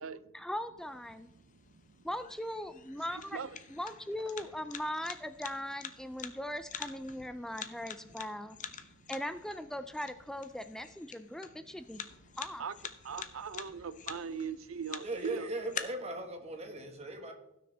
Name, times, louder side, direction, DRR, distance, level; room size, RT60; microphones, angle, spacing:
voice 1, 0.3-1.3 2.0-3.4 3.7-8.6 9.1-12.0 12.4-12.6, left 1 dB, 5° left, 11 dB, 0.3 m, -39 dB
sound 1, 0.8-15.8, left 8 dB, 40° left, 0.7 m, -47 dB
voice 2, 1.4-2.0 3.1-3.6 9.0-9.1 12.2-12.7 13.0-15.5, right 6 dB, 75° right, 15 dB, 0.6 m, -41 dB
voice 3, 15.0-17.3, right 2 dB, 30° right, 4 dB, 1.5 m, -38 dB
16.0 x 6.4 x 3.4 m, 0.87 s
head